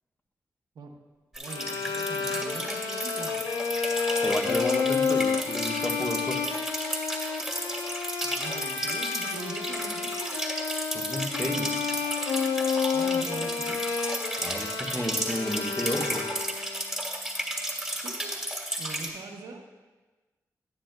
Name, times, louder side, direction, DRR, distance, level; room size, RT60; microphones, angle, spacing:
sound 1, 1.3-19.1, right 1 dB, ahead, 1.8 m, -33 dB
voice 1, 1.4-3.4 8.2-10.6 12.9-13.8 18.0-18.4 18.8-19.6, right 4 dB, 85° right, 2 dB, 0.8 m, -42 dB
Bowed string instrument, 1.5-16.7, left 5 dB, 85° left, 0.5 m, -30 dB
voice 2, 4.2-6.4 10.9-11.8 14.4-16.2, equal, 20° left, 1 dB, 1.2 m, -32 dB
10.5 x 9.5 x 2.2 m, 1.2 s
cardioid pair, 45°, 7 cm